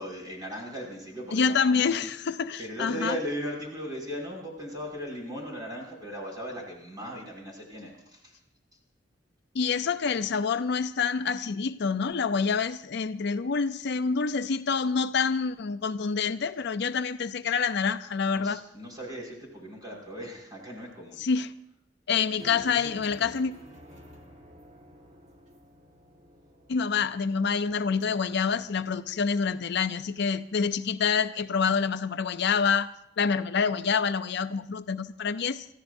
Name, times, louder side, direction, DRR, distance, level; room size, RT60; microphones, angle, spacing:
voice 1, 0.0-2.0 2.6-8.4 18.3-21.2, equal, 20° right, -1 dB, 5.9 m, -38 dB
voice 2, 1.3-3.2 9.5-18.6 21.2-21.5 22.1-23.5 26.7-35.7, left 5 dB, 65° left, 11 dB, 0.5 m, -27 dB
sound 1, 22.4-29.9, equal, 40° right, 1.8 m, -51 dB
28.5 x 14.5 x 2.6 m, 0.76 s
head